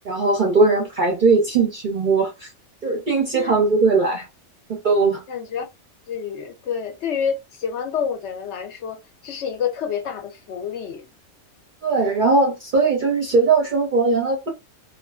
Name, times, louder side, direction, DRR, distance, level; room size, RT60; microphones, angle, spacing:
voice 1, 0.1-2.5 2.8-4.3 4.8-5.2 11.8-14.5, right 3 dB, 55° right, 0.5 m, -19 dB
voice 2, 5.3-5.7 6.1-11.1, left 7 dB, 65° left, 0.8 m, -28 dB
2.4 x 2.4 x 2.3 m
omnidirectional pair, 1.5 m